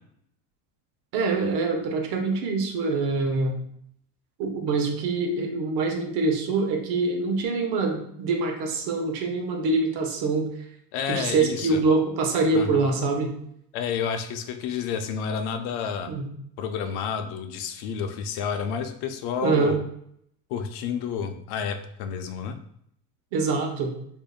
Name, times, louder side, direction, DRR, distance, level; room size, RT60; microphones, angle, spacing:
voice 1, 1.1-3.6 4.4-10.5 11.1-13.3 16.1-16.3 19.4-19.8 23.3-23.9, right 3 dB, 65° right, 3 dB, 0.9 m, -25 dB
voice 2, 10.9-11.8 12.5-12.8 13.7-16.1 16.6-19.8 20.5-22.6, left 7 dB, 65° left, 7 dB, 0.6 m, -30 dB
4.9 x 2.7 x 2.3 m, 0.69 s
cardioid pair, 135°, 42 cm